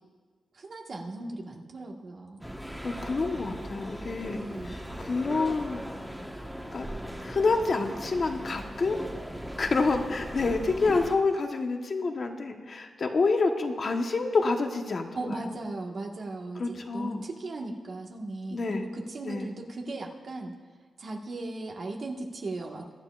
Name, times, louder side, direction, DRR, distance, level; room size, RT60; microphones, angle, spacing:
voice 1, 0.5-2.5 4.3-4.8 15.1-20.5 21.0-22.9, right 2 dB, 60° right, 0 dB, 1.6 m, -37 dB
sound 1, 2.4-11.2, equal, 5° right, 1.3 m, -39 dB
voice 2, 2.8-5.8 6.7-6.9 7.2-9.0 9.6-15.6 16.5-17.2 18.5-18.8 19.2-19.5, left 3 dB, 55° left, 4 dB, 1.2 m, -28 dB
23.0 x 11.0 x 2.5 m, 1.5 s
cardioid pair, 70°, 0 cm